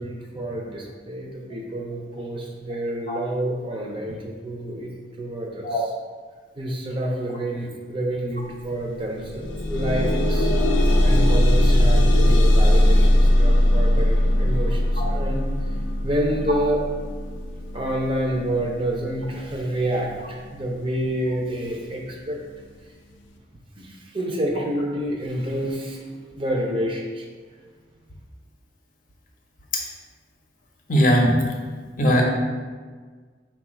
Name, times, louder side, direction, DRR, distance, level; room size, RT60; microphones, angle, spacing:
voice 1, 0.0-5.9 6.6-10.5 11.0-15.7 16.0-16.8 17.7-22.4 23.8-27.3, right 1 dB, 30° right, 0 dB, 0.5 m, -28 dB
sound 1, 8.4-8.6 8.9-20.0 20.7-20.8 21.3-21.4, left 1 dB, 85° left, 0.4 m, -20 dB
voice 2, 30.9-31.4 32.0-32.2, equal, 45° left, -1 dB, 0.6 m, -19 dB
4.4 x 2.3 x 4.3 m, 1.5 s
head